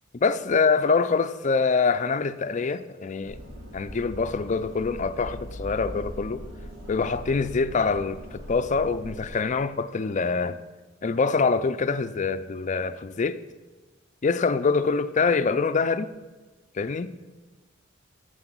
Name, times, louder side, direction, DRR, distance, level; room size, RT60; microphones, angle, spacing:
voice 1, 0.1-3.4 3.7-6.4 6.9-10.6 11.0-13.4 14.2-16.1 16.7-17.4, left 4 dB, 35° left, 0.4 m, -25 dB
sound 1, 3.2-9.3, equal, 70° right, 3.2 m, -40 dB
7.9 x 7.8 x 6.0 m
head